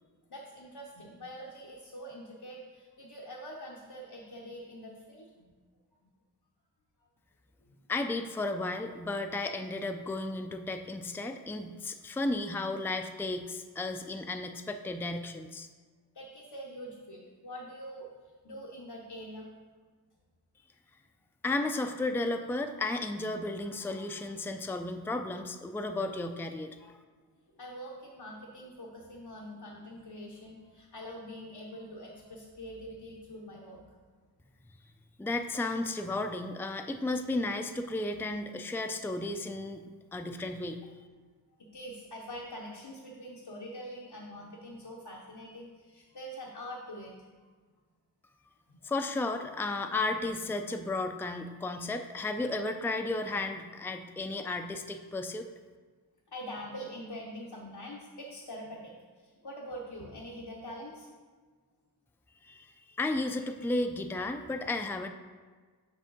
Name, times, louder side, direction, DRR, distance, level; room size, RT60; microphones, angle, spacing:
voice 1, 0.3-5.5 7.6-7.8 16.1-18.1 18.4-19.5 27.5-33.8 41.7-47.1 48.7-48.9 56.3-61.1, equal, 80° left, -2 dB, 0.9 m, -44 dB
voice 2, 7.9-15.7 21.4-27.0 35.2-40.8 48.8-55.5 62.4-65.1, left 2 dB, 5° left, 6 dB, 0.4 m, -34 dB
7.3 x 5.4 x 3.9 m, 1.5 s
wide cardioid pair, 40°, 39 cm